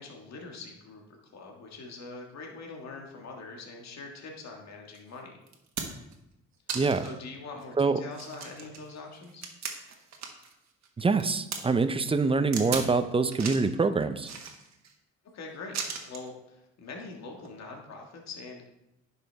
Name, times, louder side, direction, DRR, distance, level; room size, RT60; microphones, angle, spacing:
voice 1, 0.0-5.4 7.0-9.5 15.3-15.8 16.1-18.6, left 3 dB, 60° left, 1 dB, 1.7 m, -43 dB
sound 1, 4.9-5.0 5.5-6.1 6.7-7.2 7.6-7.7 8.1-10.5 10.8-11.6 12.5-12.9 13.3-13.7 14.2-14.9 15.7-16.3 17.4-17.5, right 6 dB, 65° right, 1.3 m, -37 dB
voice 2, 6.7-7.1 7.8-8.0 11.0-14.3, right 4 dB, 20° right, 11 dB, 0.5 m, -25 dB
10.0 x 5.6 x 3.4 m, 0.87 s
cardioid pair, 90°, 30 cm